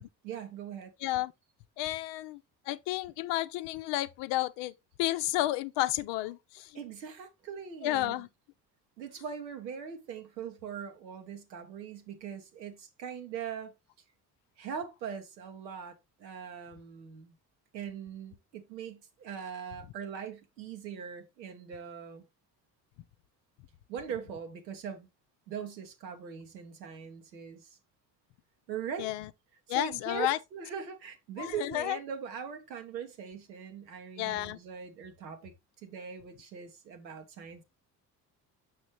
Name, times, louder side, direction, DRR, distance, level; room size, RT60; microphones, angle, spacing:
voice 1, 0.0-0.9 6.7-8.2 9.0-13.7 14.6-17.4 17.7-22.2 23.9-25.1 25.5-27.8 28.7-29.1 29.7-37.6, right 7 dB, 85° right, 1.1 m, -41 dB
voice 2, 1.0-1.3 1.8-2.4 2.7-6.8 7.8-8.3 29.0-29.3 29.7-30.4 31.4-32.0 34.2-34.6, left 15 dB, 60° left, 0.6 m, -31 dB
6.4 x 6.2 x 3.0 m
hypercardioid pair, 55°, 50 cm